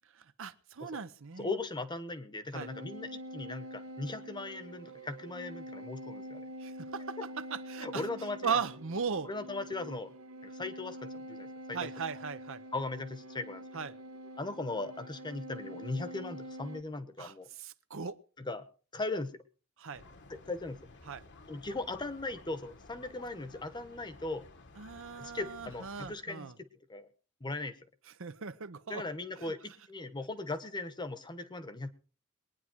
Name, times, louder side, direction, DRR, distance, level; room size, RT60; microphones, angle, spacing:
voice 1, 0.4-1.5 2.5-2.7 6.6-8.1 8.4-9.3 11.7-12.6 13.7-13.9 17.2-17.3 17.6-18.2 19.8-20.0 21.1-21.2 24.8-26.5 28.2-29.0 29.4-29.5, right 6 dB, 65° right, 0.8 m, -37 dB
voice 2, 1.4-6.4 7.2-7.3 7.8-8.6 9.2-10.1 10.4-11.9 12.7-13.6 14.4-17.5 18.4-18.7 18.9-19.3 20.3-20.9 21.5-24.4 25.2-27.1 27.4-27.8 28.9-31.9, left 2 dB, 20° left, 1.1 m, -38 dB
sound 1, 2.5-16.8, equal, 85° right, 1.2 m, -46 dB
sound 2, 19.9-26.1, left 3 dB, 55° left, 1.3 m, -54 dB
22.0 x 9.7 x 4.6 m
head